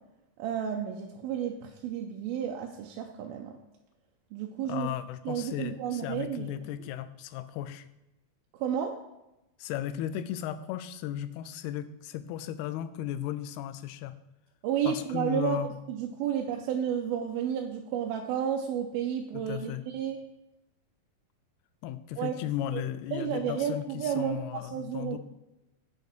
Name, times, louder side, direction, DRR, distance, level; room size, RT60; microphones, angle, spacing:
voice 1, 0.4-3.6 4.3-4.9 5.3-6.6 8.5-8.9 14.6-15.6 15.9-20.2 22.2-22.3 22.7-22.8 23.1-25.2, right 8 dB, 85° right, 1 dB, 2.5 m, -31 dB
voice 2, 4.6-7.9 9.6-14.2 14.9-15.8 19.3-19.8 21.8-25.2, left 11 dB, 90° left, 13 dB, 2.5 m, -35 dB
8.3 x 6.6 x 4.4 m, 0.93 s
omnidirectional pair, 4.4 m